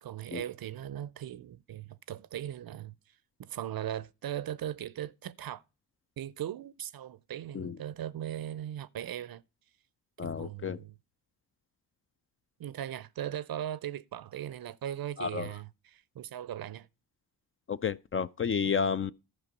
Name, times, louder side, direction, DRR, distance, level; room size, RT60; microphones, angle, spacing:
voice 1, 0.0-2.9 3.4-5.6 6.2-9.4 10.2-10.9 12.6-16.9, right 11 dB, 55° right, 0.6 m, -39 dB
voice 2, 10.2-10.8 15.2-15.5 17.7-19.1, left 6 dB, 30° left, 0.4 m, -31 dB
11.5 x 5.2 x 5.2 m
supercardioid pair, 50°, 43 cm